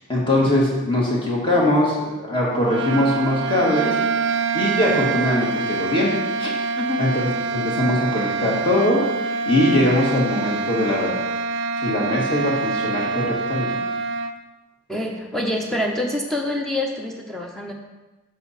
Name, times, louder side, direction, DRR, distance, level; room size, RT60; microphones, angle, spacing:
voice 1, 0.1-4.3 4.5-6.1 6.4-6.5 7.0-11.3 11.8-13.8, left 1 dB, 25° left, -4 dB, 1.8 m, -21 dB
sound 1, 2.5-14.4, right 4 dB, 50° right, 0.4 m, -25 dB
voice 2, 14.9-17.7, left 1 dB, ahead, 0 dB, 0.8 m, -26 dB
6.9 x 6.8 x 4.1 m, 1.1 s
head